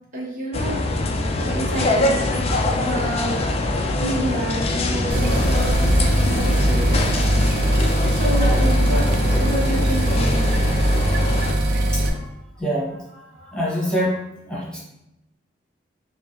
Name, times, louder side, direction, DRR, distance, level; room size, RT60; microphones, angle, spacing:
voice 1, 0.1-0.8 1.4-3.4 4.0-7.1 8.1-9.0 9.4-10.5, equal, 45° right, -5 dB, 1.0 m, -29 dB
sound 1, 0.5-11.5, left 2 dB, 35° left, 0.4 m, -23 dB
sound 2, 5.1-12.1, right 1 dB, 60° right, 0.5 m, -21 dB
voice 2, 10.9-11.2 11.9-14.8, equal, 5° left, -7 dB, 1.2 m, -28 dB
5.2 x 2.1 x 3.1 m, 0.89 s
head